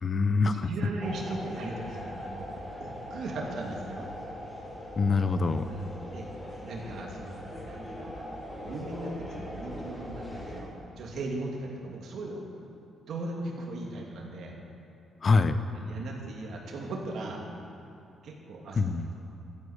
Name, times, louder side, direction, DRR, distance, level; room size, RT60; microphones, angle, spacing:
voice 1, 0.0-0.7 5.0-5.6 15.2-15.6 18.8-19.1, left 4 dB, 40° left, 11 dB, 0.8 m, -24 dB
voice 2, 0.5-4.1 5.7-6.3 6.6-8.3 8.6-12.4 13.1-14.6 15.7-17.4 18.2-18.8 19.1-19.3, right 2 dB, 65° right, 0 dB, 2.8 m, -38 dB
sound 1, 1.0-10.6, equal, 20° left, 4.0 m, -41 dB
12.5 x 10.5 x 8.4 m, 2.8 s
cardioid pair, 90°, 0 cm